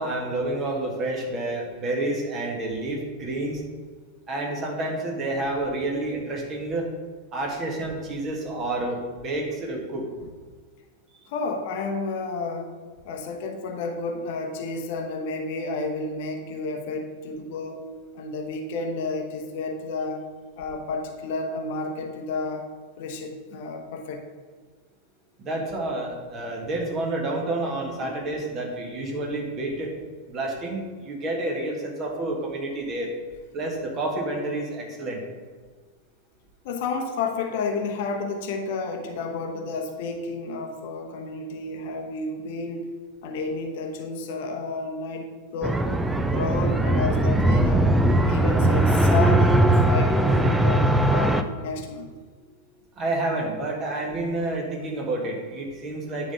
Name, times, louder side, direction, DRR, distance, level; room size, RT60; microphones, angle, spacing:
voice 1, 0.0-3.6 4.3-6.9 7.3-10.1 25.4-29.9 30.3-33.1 33.5-35.2 52.9-56.3, right 2 dB, 30° right, 1 dB, 1.8 m, -29 dB
voice 2, 11.3-12.7 13.0-17.8 18.1-20.2 20.6-22.6 23.0-24.2 28.0-28.1 36.6-42.9 43.2-45.9 46.3-47.9 48.3-52.1, left 3 dB, 50° left, 4 dB, 0.9 m, -31 dB
sound 1, 45.6-51.4, right 1 dB, 10° right, 0.5 m, -20 dB
9.8 x 4.1 x 5.5 m, 1.5 s
figure-of-eight pair, 90°, 0 cm